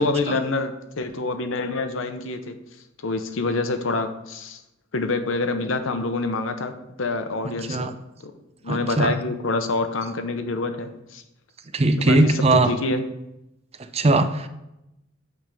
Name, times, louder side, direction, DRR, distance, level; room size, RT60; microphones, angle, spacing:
voice 1, 0.0-2.6 3.0-4.6 4.9-7.9 8.2-8.3 8.6-11.2 12.0-13.0, left 3 dB, 75° left, 8 dB, 0.8 m, -26 dB
voice 2, 8.7-9.2 11.7-12.7 13.9-14.5, right 2 dB, 30° right, 9 dB, 0.5 m, -19 dB
8.9 x 3.6 x 5.3 m, 0.88 s
head